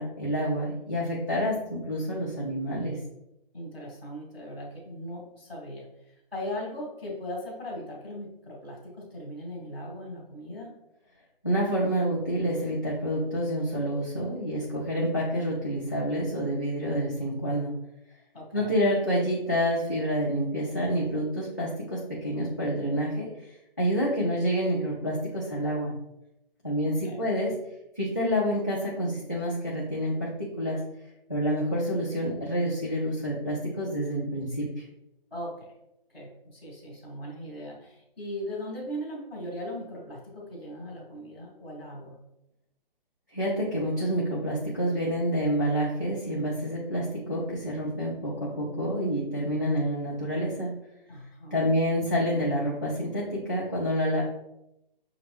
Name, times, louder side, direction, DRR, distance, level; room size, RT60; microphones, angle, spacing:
voice 1, 0.0-3.0 11.4-17.7 18.5-23.5 23.8-25.9 26.6-27.5 28.0-30.8 31.3-34.8 43.3-50.7 51.5-54.2, equal, 20° left, -7 dB, 0.4 m, -28 dB
voice 2, 3.5-10.7 18.3-18.7 26.8-27.2 27.5-27.6 35.3-35.7 36.1-42.2 51.1-51.7, equal, ahead, -15 dB, 1.0 m, -39 dB
6.3 x 2.5 x 3.3 m, 0.84 s
hypercardioid pair, 175°, 29 cm